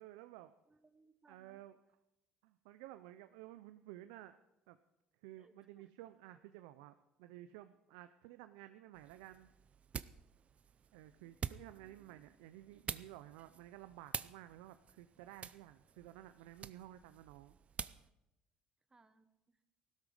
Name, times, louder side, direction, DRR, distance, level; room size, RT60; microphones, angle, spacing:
voice 1, 0.0-0.5 1.3-1.8 2.4-4.4 4.7-4.8 5.2-9.5 10.9-17.6, right 14 dB, 85° right, 11 dB, 0.5 m, -54 dB
voice 2, 0.7-1.6 5.3-5.9 11.7-12.3 18.9-19.6, right 3 dB, 25° right, 10 dB, 1.4 m, -69 dB
sound 1, 8.9-18.1, right 7 dB, 40° right, 0.6 m, -48 dB
15.5 x 12.5 x 5.0 m, 0.92 s
supercardioid pair, 75°, 3 cm